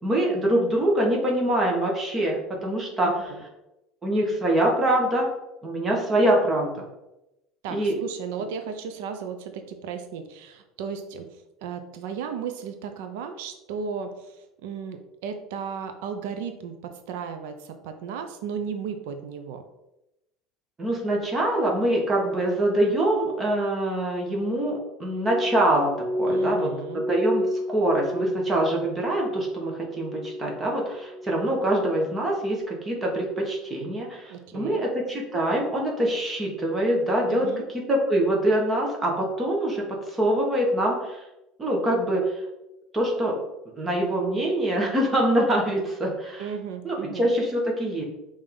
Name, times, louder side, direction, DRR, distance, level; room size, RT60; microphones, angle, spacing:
voice 1, 0.0-3.1 4.0-5.3 5.6-6.8 7.7-8.0 20.8-41.2 41.6-42.4 42.9-43.4 43.7-46.5 46.8-48.0, right 1 dB, 15° right, -2 dB, 1.3 m, -24 dB
voice 2, 3.0-3.4 7.6-19.6 26.2-27.0 34.3-34.8 37.3-37.6 46.4-47.3, right 6 dB, 80° right, 7 dB, 0.7 m, -35 dB
Glass, 25.1-29.7 29.9-30.6 31.0-31.5 32.1-32.4, left 1 dB, 25° left, 1.9 m, -30 dB
5.5 x 3.5 x 5.2 m, 0.92 s
cardioid pair, 165°, 0 cm